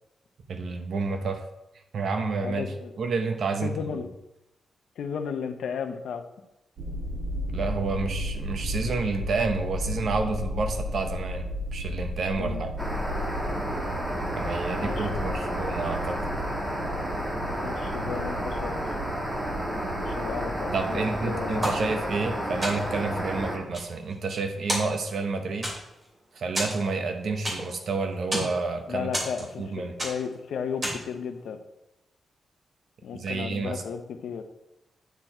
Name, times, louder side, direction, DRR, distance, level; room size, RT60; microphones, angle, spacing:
voice 1, 0.5-1.5 1.9-2.7 3.0-4.0 7.5-12.7 14.4-16.2 20.7-25.7 26.3-29.1 29.6-29.9 33.1-33.8, right 4 dB, 60° right, 6 dB, 1.0 m, -29 dB
voice 2, 2.4-2.9 3.6-4.1 5.0-6.2 12.4-12.7 14.2-14.3 14.8-15.7 17.1-18.8 20.0-21.7 28.9-31.6 33.0-34.4, left 6 dB, 85° left, 8 dB, 0.7 m, -34 dB
sound 1, 6.8-23.2, equal, 80° right, 1.7 m, -35 dB
sound 2, 12.8-23.6, equal, 15° right, 1.3 m, -31 dB
sound 3, 21.6-22.3 22.6-23.1 23.5-24.4 24.7-25.3 25.6-26.1 26.5-27.8 28.1-28.6 29.1-29.7 30.0-30.4 30.8-31.2, equal, 30° right, 3.1 m, -31 dB
9.4 x 4.6 x 4.4 m, 0.92 s
wide cardioid pair, 125°, 0 cm